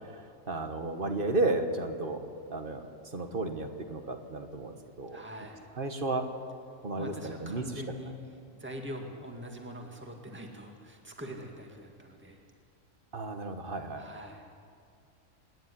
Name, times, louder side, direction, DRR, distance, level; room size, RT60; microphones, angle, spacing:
voice 1, 0.5-2.9 3.1-5.2 5.8-6.3 6.8-7.8 13.1-14.0, right 2 dB, 40° right, 6 dB, 1.6 m, -33 dB
voice 2, 5.1-5.7 7.0-8.2 8.5-12.4 13.9-14.5, equal, 10° right, 2 dB, 2.0 m, -43 dB
26.5 x 10.5 x 9.9 m, 2.4 s
omnidirectional pair, 1.4 m